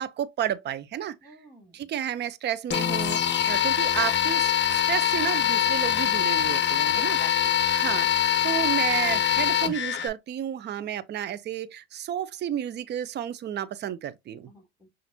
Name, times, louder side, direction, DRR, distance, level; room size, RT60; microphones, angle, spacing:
voice 1, 0.0-1.3 1.7-14.5, right 10 dB, 30° right, 0.5 m, -32 dB
voice 2, 1.2-1.8 6.9-7.6 14.4-14.9, equal, 10° left, 2.7 m, -48 dB
sound 1, 2.7-10.1, left 10 dB, 35° left, 0.8 m, -24 dB
5.8 x 2.5 x 2.7 m
supercardioid pair, 90°, 34 cm